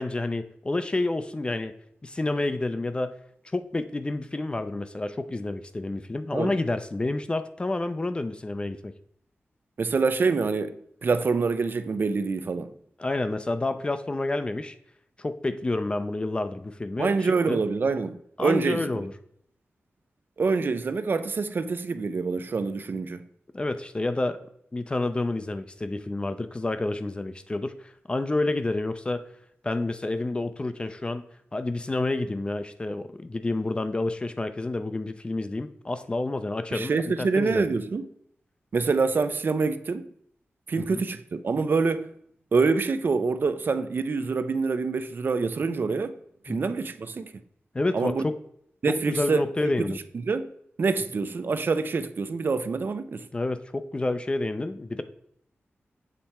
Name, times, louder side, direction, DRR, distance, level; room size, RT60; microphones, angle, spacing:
voice 1, 0.0-1.7 2.0-3.2 3.4-8.9 13.0-14.8 15.2-17.6 18.4-19.1 23.5-24.4 24.7-29.2 29.6-31.2 31.5-37.7 40.8-41.0 46.5-46.6 47.7-48.4 48.9-50.0 53.3-55.0, left 2 dB, 25° left, 0.4 m, -29 dB
voice 2, 9.8-10.8 11.0-12.7 17.0-18.9 20.4-23.2 36.7-38.1 38.7-40.1 40.7-42.1 42.5-46.2 46.4-47.3 47.9-48.2 48.8-49.9 50.2-50.5 50.8-53.3, right 4 dB, 50° right, 0.4 m, -26 dB
7.4 x 3.3 x 4.2 m
wide cardioid pair, 125°, 4 cm